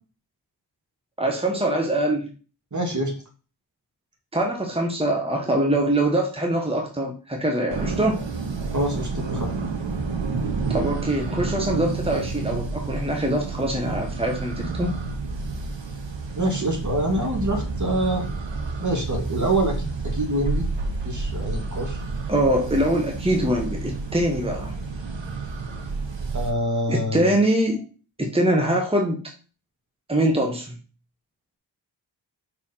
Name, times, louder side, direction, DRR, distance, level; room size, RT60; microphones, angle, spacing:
voice 1, 1.2-2.3 4.3-8.2 10.7-15.0 22.3-24.7 26.9-27.8 28.2-29.2 30.1-30.7, right 1 dB, 15° right, 1 dB, 1.7 m, -23 dB
voice 2, 2.7-3.1 8.7-9.5 16.4-18.3 18.8-20.7 21.0-22.0 26.3-27.4, right 1 dB, 40° right, 2 dB, 2.4 m, -26 dB
sound 1, 7.7-26.5, right 4 dB, 75° right, 1.5 m, -30 dB
5.9 x 4.8 x 5.8 m, 0.36 s
cardioid pair, 60°, 44 cm